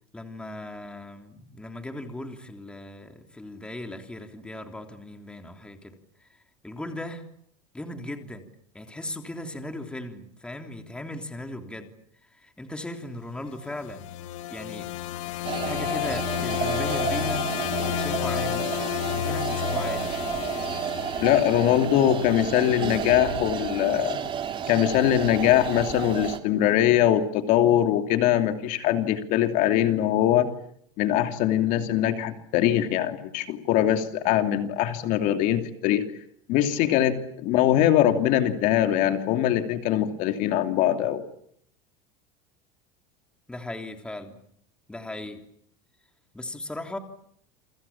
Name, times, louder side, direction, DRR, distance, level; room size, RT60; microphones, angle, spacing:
voice 1, 0.1-7.2 7.7-8.5 8.7-11.9 12.2-14.0 14.5-14.9 15.6-18.7 19.0-20.1 43.5-44.4 44.9-45.4 46.3-47.0, left 1 dB, 5° left, 5 dB, 3.3 m, -37 dB
sound 1, 13.7-21.9, left 12 dB, 85° left, 2.9 m, -31 dB
sound 2, 15.4-26.4, right 8 dB, 30° right, 2.8 m, -31 dB
voice 2, 21.2-24.2 24.7-30.5 31.0-36.0 36.5-41.2, left 11 dB, 55° left, 7 dB, 2.8 m, -22 dB
28.5 x 26.0 x 7.3 m, 0.67 s
supercardioid pair, 135°, 16 cm